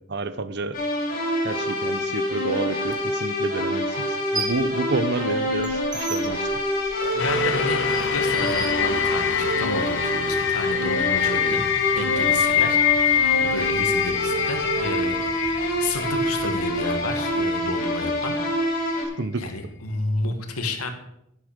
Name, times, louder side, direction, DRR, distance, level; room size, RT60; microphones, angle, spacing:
voice 1, 0.1-0.8 1.4-6.5 19.2-19.5, right 3 dB, 50° right, 13 dB, 0.7 m, -29 dB
sound 1, 0.7-19.0, left 1 dB, 40° left, 5.0 m, -26 dB
sound 2, 2.9-3.0 4.0-4.7 5.1-9.4, right 4 dB, 20° right, 1.3 m, -36 dB
voice 2, 7.1-11.7 11.9-18.4 19.4-20.9, left 2 dB, 80° left, 6 dB, 1.9 m, -31 dB
sound 3, 7.2-18.3 18.8-18.9, left 9 dB, 55° left, 0.7 m, -25 dB
11.5 x 11.5 x 5.2 m, 0.77 s
head